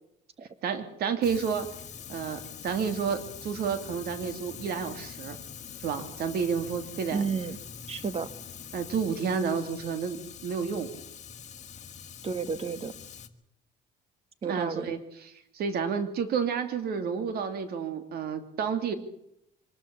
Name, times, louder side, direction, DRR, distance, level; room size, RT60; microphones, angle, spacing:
voice 1, 0.6-1.7 2.1-5.4 5.8-7.2 8.7-10.9 14.5-18.9, right 6 dB, 65° right, 10 dB, 2.8 m, -30 dB
Fire, 1.2-13.3, left 7 dB, 45° left, 1.7 m, -44 dB
voice 2, 7.1-7.6 7.9-8.3 12.2-12.9 14.4-14.9, right 5 dB, 35° right, 14 dB, 1.6 m, -31 dB
24.5 x 13.0 x 8.5 m, 0.79 s
cardioid pair, 110°, 17 cm